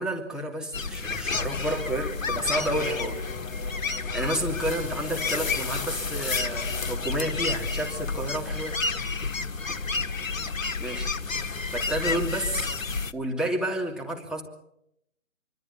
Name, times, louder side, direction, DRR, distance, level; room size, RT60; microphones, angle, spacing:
voice 1, 0.0-3.2 4.1-8.8 10.8-11.1 11.7-12.7 13.1-14.4, right 1 dB, ahead, -1 dB, 3.0 m, -30 dB
sound 1, 0.7-13.1, left 4 dB, 85° left, 1.4 m, -30 dB
Bowed string instrument, 2.6-8.3, left 3 dB, 25° left, 4.6 m, -43 dB
26.0 x 25.0 x 4.9 m, 0.76 s
figure-of-eight pair, 140°, 39 cm